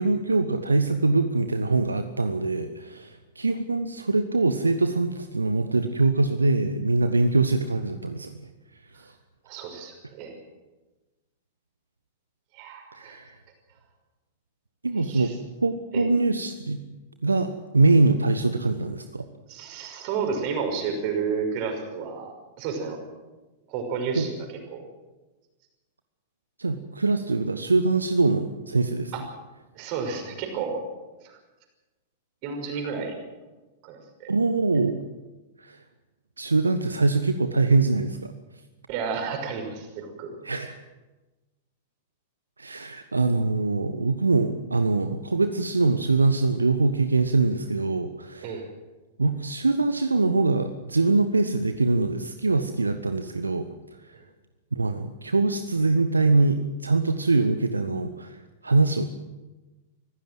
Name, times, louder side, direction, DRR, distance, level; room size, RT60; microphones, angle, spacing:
voice 1, 0.0-8.4 8.9-9.1 12.9-13.4 14.8-15.3 15.6-16.8 17.2-19.3 24.1-24.3 26.6-29.1 34.3-35.0 35.6-35.8 36.4-38.3 40.4-40.8 42.6-48.6 49.2-53.7 54.1-54.2 54.7-59.1, right 3 dB, 80° right, 10 dB, 1.1 m, -23 dB
voice 2, 9.4-10.4 12.5-13.2 15.0-15.3 15.9-16.1 19.5-22.3 22.6-23.0 23.7-24.4 24.7-24.8 29.1-29.2 29.7-30.8 31.2-31.4 32.4-33.2 33.8-34.3 38.9-40.4 48.4-48.7, right 5 dB, 40° right, 4 dB, 5.8 m, -31 dB
25.0 x 16.0 x 7.8 m, 1.2 s
figure-of-eight pair, 95°, 0 cm